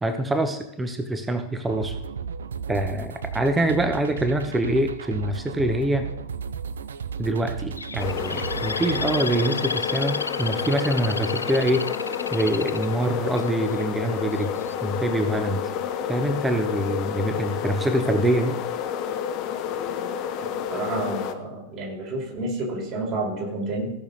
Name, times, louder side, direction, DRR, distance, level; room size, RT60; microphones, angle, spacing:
voice 1, 0.0-1.9 2.7-6.1 7.2-11.9 12.3-14.5 14.8-15.6 16.1-18.5, right 1 dB, 10° right, 8 dB, 1.0 m, -25 dB
sound 1, 1.7-9.2, right 6 dB, 65° right, 0.5 m, -34 dB
Bird, 7.8-13.8 14.4-14.8, left 3 dB, 80° left, 0.3 m, -32 dB
sound 2, 8.0-21.3, left 8 dB, 40° left, 0.9 m, -30 dB
voice 2, 20.7-23.9, right 2 dB, 35° right, -1 dB, 4.3 m, -30 dB
15.5 x 6.6 x 4.0 m, 0.81 s
figure-of-eight pair, 90°, 0 cm